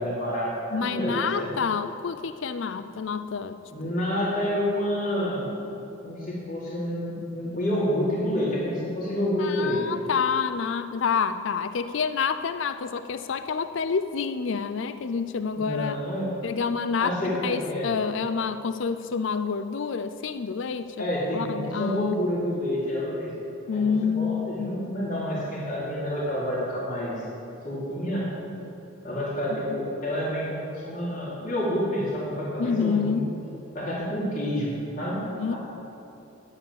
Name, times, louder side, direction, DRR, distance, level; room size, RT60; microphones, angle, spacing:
voice 1, 0.0-1.6 3.7-5.5 6.0-9.8 15.5-16.3 17.0-17.9 21.0-23.3 23.7-27.3 27.6-28.3 29.0-33.2 33.7-35.6, equal, 40° left, -6 dB, 4.1 m, -28 dB
voice 2, 0.7-3.6 3.8-3.9 9.4-16.0 16.4-17.2 17.4-21.1 21.3-22.1 23.7-24.8 29.5-29.8 32.6-33.3 35.4-35.5, left 6 dB, 65° left, 11 dB, 0.4 m, -28 dB
11.5 x 9.8 x 8.7 m, 2.9 s
head